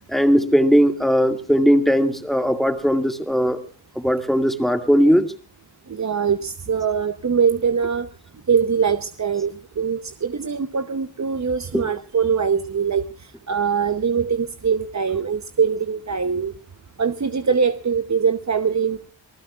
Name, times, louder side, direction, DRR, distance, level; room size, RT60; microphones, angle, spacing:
voice 1, 0.1-3.6 4.0-5.3 11.7-11.9, equal, ahead, 6 dB, 2.1 m, -18 dB
voice 2, 5.9-8.1 8.5-13.0 13.5-16.5 17.0-19.1, right 6 dB, 40° right, 10 dB, 0.8 m, -22 dB
27.0 x 19.5 x 2.4 m, 0.39 s
wide cardioid pair, 110°, 44 cm